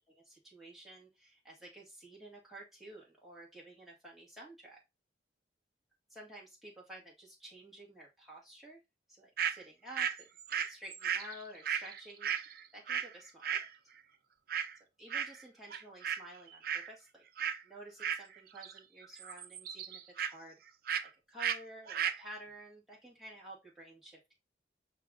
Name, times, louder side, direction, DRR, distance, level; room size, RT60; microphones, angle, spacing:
voice 1, 0.0-4.8 6.1-8.8 9.1-10.3 10.7-12.3 12.7-13.7 15.0-17.2 17.6-20.6 21.0-24.4, right 1 dB, ahead, -5 dB, 1.7 m, -52 dB
sound 1, 9.4-9.6 9.9-13.1 13.4-13.7 14.5-14.8 15.1-15.4 15.7-16.2 16.5-16.9 17.4-17.6 18.0-18.8 19.0-20.3 20.9-21.1 21.4-21.6 21.9-22.2, right 8 dB, 50° right, 0.4 m, -35 dB
5.7 x 2.4 x 3.6 m, 0.22 s
head